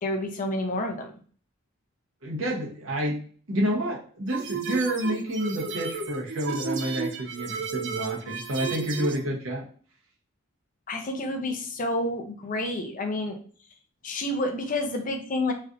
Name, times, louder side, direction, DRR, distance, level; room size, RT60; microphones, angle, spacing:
voice 1, 0.0-1.1 10.9-13.4 14.0-15.5, left 1 dB, 40° left, 4 dB, 0.5 m, -29 dB
voice 2, 2.2-3.2 3.5-9.7, right 1 dB, 80° right, -2 dB, 1.0 m, -29 dB
sound 1, 4.3-9.2, right 5 dB, 60° right, 0.4 m, -33 dB
3.2 x 2.5 x 2.6 m, 0.44 s
head